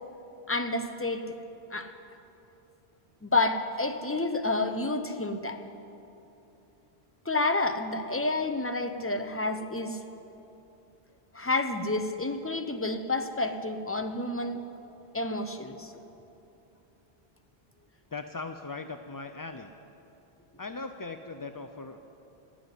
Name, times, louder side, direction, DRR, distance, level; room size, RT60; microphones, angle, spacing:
voice 1, 0.5-1.2 1.7-1.9 3.2-5.6 7.3-10.0 11.3-14.6 15.1-15.9, left 2 dB, 15° left, 7 dB, 0.7 m, -29 dB
voice 2, 18.1-19.7 20.6-22.0, left 3 dB, 35° left, 7 dB, 0.3 m, -39 dB
16.0 x 9.8 x 9.2 m, 2.9 s
omnidirectional pair, 1.0 m